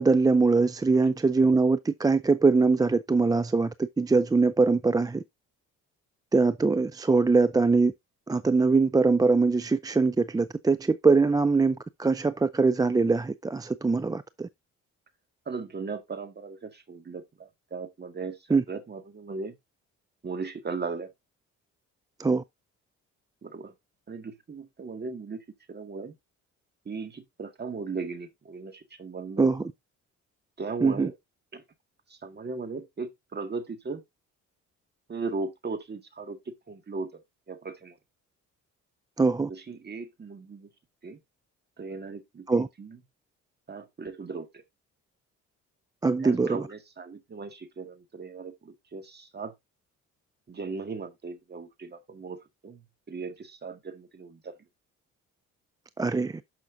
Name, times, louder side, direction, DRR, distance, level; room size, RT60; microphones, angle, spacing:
voice 1, 0.0-5.2 6.3-7.9 8.3-14.5 18.5-18.6 22.2-22.4 29.4-29.6 30.8-31.1 39.2-39.5 42.5-42.7 46.0-46.6 56.0-56.4, right 4 dB, 15° right, 0.4 m, -22 dB
voice 2, 15.5-19.5 20.2-21.1 23.4-23.7 24.1-26.2 26.9-29.5 30.6-31.1 31.5-31.6 32.1-34.0 35.1-37.2 37.5-38.0 39.5-40.7 41.0-41.2 41.8-43.0 43.7-44.6 46.2-49.5 50.5-52.8 53.1-54.5, right 4 dB, 35° right, 1.9 m, -37 dB
11.5 x 5.9 x 2.6 m
cardioid pair, 90°, 30 cm